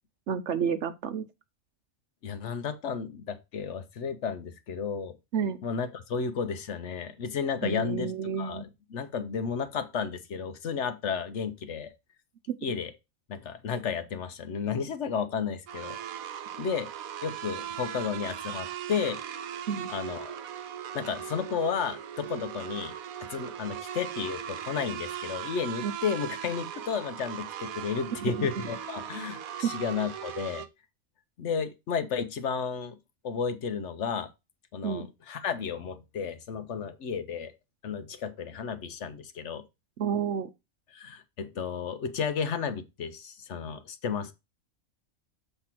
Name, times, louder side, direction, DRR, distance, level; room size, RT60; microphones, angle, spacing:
voice 1, 0.3-1.3 5.3-5.6 7.6-8.6 12.5-12.6 19.7-19.9 25.8-25.9 28.2-28.5 29.6-29.7 34.8-35.1 40.0-40.5, right 7 dB, 65° right, 0.9 m, -30 dB
voice 2, 2.2-5.2 5.6-8.1 8.4-11.9 12.6-12.9 13.3-16.0 16.6-16.9 17.2-19.2 19.9-20.4 20.9-30.7 31.4-33.0 33.2-34.3 34.7-37.5 37.8-39.6 40.9-44.3, left 6 dB, 60° left, 1.0 m, -33 dB
sound 1, 15.7-30.7, right 10 dB, 85° right, 1.2 m, -39 dB
7.1 x 3.3 x 5.9 m
omnidirectional pair, 1.5 m